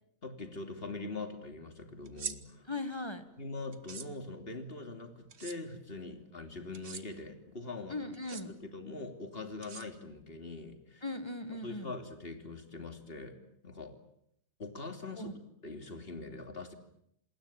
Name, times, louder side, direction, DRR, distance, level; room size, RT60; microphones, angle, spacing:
voice 1, 0.2-2.7 3.4-8.0 8.4-11.0 11.6-13.4 13.6-13.9 14.6-16.7, left 3 dB, 40° left, 7 dB, 3.2 m, -43 dB
sound 1, 2.1-2.4 3.7-4.1 5.3-5.6 6.7-7.0 8.1-8.4 9.6-10.2, right 6 dB, 50° right, 1.6 m, -42 dB
voice 2, 2.7-3.2 7.9-8.5 11.0-11.9 15.1-15.3, left 2 dB, 20° left, 10 dB, 1.7 m, -38 dB
28.0 x 20.5 x 8.9 m, 0.71 s
omnidirectional pair, 1.5 m